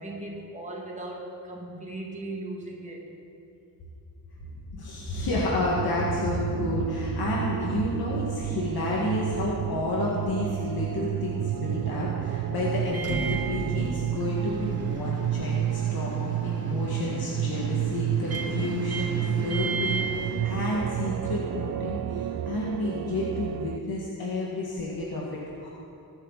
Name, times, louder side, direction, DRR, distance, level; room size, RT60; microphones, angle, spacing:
voice 1, 0.0-3.1 24.9-25.0, right 2 dB, 20° right, -2 dB, 2.2 m, -38 dB
voice 2, 4.4-25.7, left 2 dB, 80° left, -5 dB, 2.0 m, -30 dB
sound 1, 5.7-23.8, right 11 dB, 65° right, 0.5 m, -31 dB
Microwave oven, 12.9-21.0, right 4 dB, 40° right, 1.7 m, -35 dB
22.0 x 9.2 x 4.1 m, 2.7 s
wide cardioid pair, 130°, 36 cm